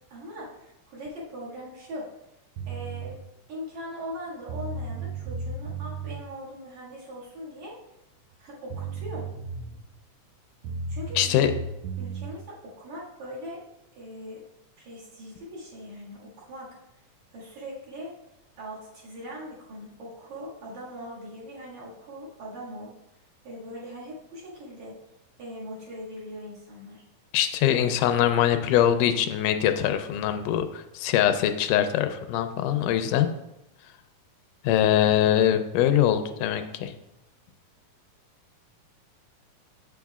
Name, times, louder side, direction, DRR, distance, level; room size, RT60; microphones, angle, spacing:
voice 1, 0.1-2.1 2.7-3.2 3.5-7.8 8.4-9.3 10.9-11.5 12.0-13.7 14.0-14.4 14.8-16.7 17.3-18.2 18.6-22.9 23.4-25.0 25.4-27.0, equal, 65° right, -6 dB, 3.2 m, -40 dB
sound 1, 2.6-3.1 4.1-4.2 4.5-6.2 8.3-8.4 8.7-9.9 10.6-12.3, right 4 dB, 85° right, 1.3 m, -34 dB
voice 2, 11.2-11.5 27.3-33.3 34.6-36.9, left 10 dB, 90° left, 8 dB, 2.1 m, -23 dB
7.8 x 7.2 x 2.4 m, 0.86 s
omnidirectional pair, 3.6 m